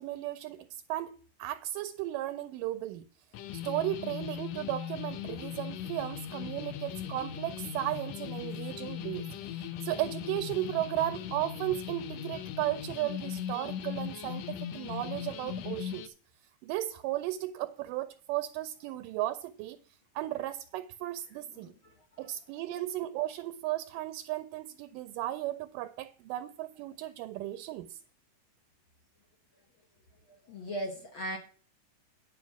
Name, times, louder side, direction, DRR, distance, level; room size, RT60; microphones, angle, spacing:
voice 1, 0.0-3.1 3.5-16.1 16.6-19.8 20.2-21.7 22.2-28.0, right 14 dB, 80° right, 2.2 m, -35 dB
sound 1, 3.3-16.1, left 9 dB, 80° left, 1.5 m, -39 dB
voice 2, 21.3-22.3 30.5-31.4, right 1 dB, 60° left, 1.4 m, -39 dB
10.0 x 5.0 x 7.1 m
omnidirectional pair, 3.9 m